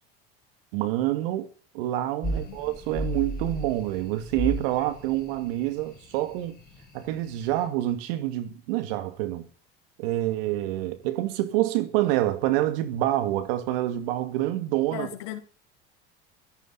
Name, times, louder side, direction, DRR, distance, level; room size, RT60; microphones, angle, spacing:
voice 1, 0.7-6.6 6.9-9.5 10.0-15.1, right 14 dB, 75° right, 2.2 m, -27 dB
sound 1, 2.2-7.6, equal, 30° left, 5.1 m, -35 dB
voice 2, 2.3-2.8 14.9-15.4, left 14 dB, 70° left, 3.4 m, -38 dB
15.5 x 14.0 x 4.1 m
hypercardioid pair, 75°, 29 cm